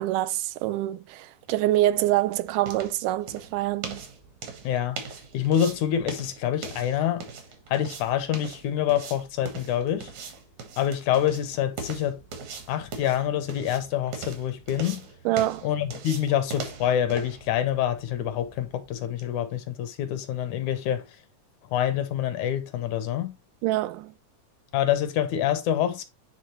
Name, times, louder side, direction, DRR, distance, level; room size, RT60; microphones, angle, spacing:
voice 1, 0.0-4.0 15.3-15.7 23.6-24.1, right 15 dB, 90° right, 2.2 m, -25 dB
sound 1, 1.5-19.3, right 5 dB, 65° right, 2.7 m, -41 dB
voice 2, 4.6-5.0 5.3-7.3 7.7-10.1 10.8-12.2 12.7-15.0 15.6-21.1 21.7-23.4 24.7-26.0, left 10 dB, 75° left, 2.1 m, -26 dB
9.6 x 3.6 x 3.0 m
omnidirectional pair, 3.6 m